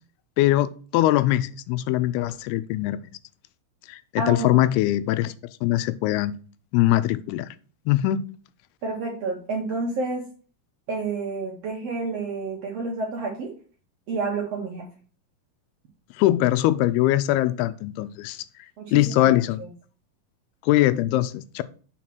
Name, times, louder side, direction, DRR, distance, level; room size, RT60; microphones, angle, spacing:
voice 1, 0.4-3.1 3.9-5.3 5.6-6.3 6.7-7.5 7.9-8.3 16.1-18.4 18.9-19.6 20.6-21.6, left 15 dB, 90° left, 2.5 m, -22 dB
voice 2, 4.2-4.5 8.8-10.2 10.9-13.5 14.1-14.8 18.8-19.3 19.6-19.7, right 3 dB, 65° right, 1.6 m, -29 dB
5.7 x 4.7 x 5.9 m
omnidirectional pair, 4.4 m